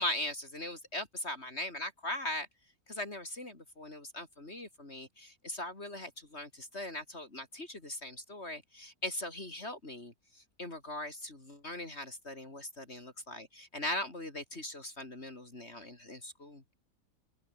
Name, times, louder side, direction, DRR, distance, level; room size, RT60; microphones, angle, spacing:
voice 1, 0.0-2.5 2.9-10.1 10.6-16.8, left 1 dB, 40° left, 4.3 m, -40 dB
omnidirectional pair, 1.6 m